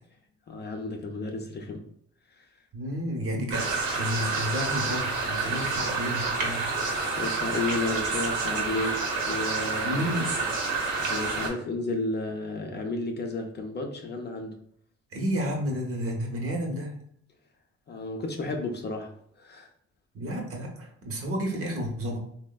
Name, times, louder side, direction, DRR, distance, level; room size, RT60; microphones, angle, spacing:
voice 1, 0.5-1.8 2.3-2.5 7.2-10.1 11.1-14.6 17.9-19.7, left 2 dB, 35° left, 3 dB, 0.4 m, -32 dB
voice 2, 2.7-6.7 9.8-10.3 15.1-17.0 20.1-22.2, equal, 50° right, 1 dB, 0.8 m, -31 dB
sound 1, 3.5-11.5, right 4 dB, 75° right, 0.9 m, -29 dB
3.2 x 2.0 x 2.2 m, 0.67 s
cardioid pair, 90°, 30 cm